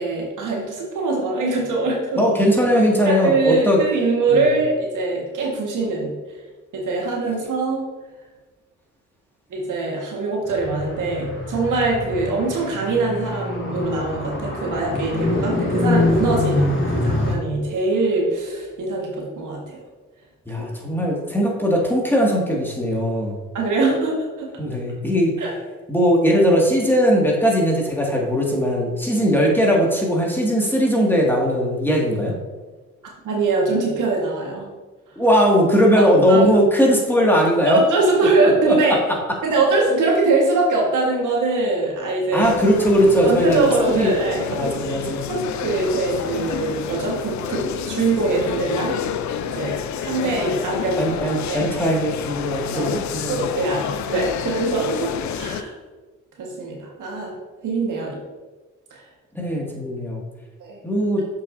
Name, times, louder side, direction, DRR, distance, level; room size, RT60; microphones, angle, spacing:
voice 1, 0.0-2.2 3.0-6.1 6.7-7.9 9.5-19.8 23.5-24.5 25.4-25.5 33.2-34.7 36.0-36.5 37.6-39.0 39.4-42.5 43.2-45.0 45.3-49.0 49.4-51.2 51.5-51.7 52.7-52.9 53.3-53.8 54.1-55.7 56.4-57.3 57.6-58.2 58.9-59.0 60.6-60.8, right 3 dB, 75° right, -2 dB, 1.6 m, -22 dB
voice 2, 2.2-3.8 4.3-4.5 20.5-23.4 24.6-25.3 25.9-32.3 35.2-37.8 38.7-38.8 42.3-44.1 44.5-45.3 51.0-53.5 59.3-60.2 60.8-61.2, equal, 5° left, -2 dB, 2.0 m, -19 dB
Car, 10.5-17.3, left 2 dB, 40° left, 1.6 m, -24 dB
sound 1, 42.4-55.6, left 8 dB, 65° left, 0.5 m, -29 dB
7.0 x 5.6 x 2.7 m, 1.3 s
supercardioid pair, 50°, 31 cm